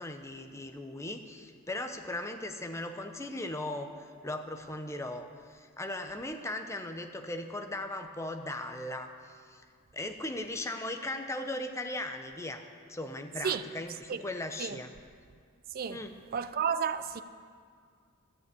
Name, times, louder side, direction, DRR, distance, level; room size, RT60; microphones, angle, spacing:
voice 1, 0.0-9.6 9.9-12.6 12.9-14.9 15.9-16.1, left 1 dB, 15° left, 0.7 m, -38 dB
voice 2, 16.3-17.2, right 7 dB, 45° right, 0.4 m, -31 dB
13.0 x 6.8 x 8.3 m
head